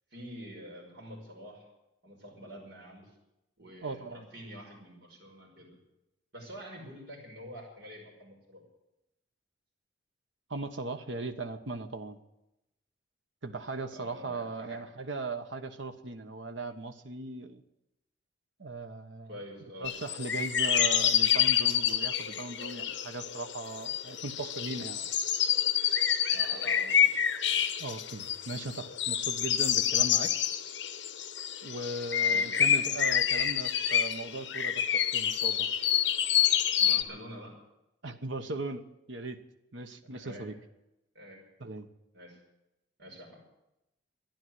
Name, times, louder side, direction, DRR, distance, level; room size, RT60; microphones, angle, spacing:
voice 1, 0.1-1.6 2.0-3.1 3.6-5.7 6.3-8.6 13.9-14.8 19.2-20.0 24.9-25.1 26.3-27.0 32.2-32.8 36.8-37.6 40.1-40.5 41.1-41.4 42.1-42.4 43.0-43.4, equal, 60° right, -1 dB, 5.6 m, -47 dB
voice 2, 3.8-4.3 10.5-12.2 13.4-17.6 18.6-19.3 19.8-25.0 27.8-30.3 31.6-35.7 38.0-39.4 39.7-40.6 41.6-41.9, right 2 dB, 80° right, 7 dB, 1.2 m, -38 dB
sound 1, 19.8-37.0, left 9 dB, 70° left, 1.0 m, -28 dB
13.0 x 10.5 x 9.4 m, 0.90 s
head